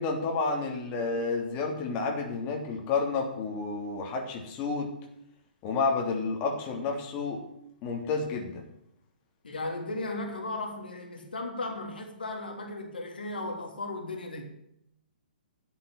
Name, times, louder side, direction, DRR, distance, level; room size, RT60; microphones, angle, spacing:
voice 1, 0.0-4.9 5.6-7.4 7.8-8.6, left 4 dB, 30° left, 3.2 m, -30 dB
voice 2, 9.4-14.6, left 2 dB, 75° left, 3.2 m, -36 dB
11.0 x 7.9 x 8.7 m
figure-of-eight pair, 120°, 5 cm